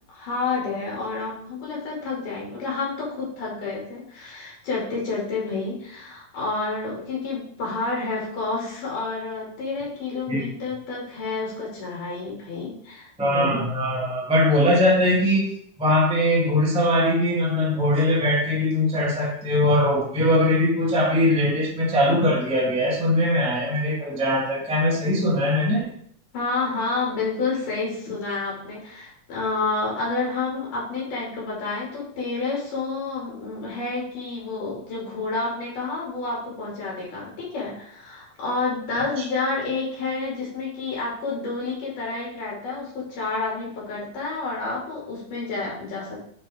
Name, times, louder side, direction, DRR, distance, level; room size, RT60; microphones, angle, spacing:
voice 1, 0.1-13.1 26.3-46.3, left 3 dB, 80° left, -5 dB, 4.2 m, -29 dB
voice 2, 13.2-15.5 15.8-25.9 39.2-39.3, left 1 dB, 5° right, -3 dB, 0.7 m, -21 dB
9.9 x 4.2 x 3.6 m, 0.64 s
omnidirectional pair, 3.7 m